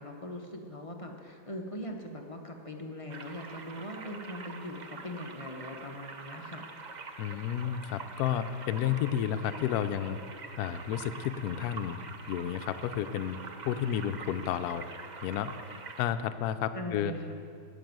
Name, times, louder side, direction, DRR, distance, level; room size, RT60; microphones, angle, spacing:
voice 1, 0.0-6.6 16.7-17.4, left 1 dB, 30° left, 2 dB, 0.7 m, -41 dB
sound 1, 3.1-16.1, right 4 dB, 65° right, 0.4 m, -45 dB
voice 2, 7.2-10.2 10.6-12.0 12.3-13.4 13.6-14.8 15.2-15.5 16.0-17.1, left 10 dB, 70° left, 9 dB, 1.0 m, -31 dB
13.5 x 6.2 x 9.3 m, 2.4 s
omnidirectional pair, 1.8 m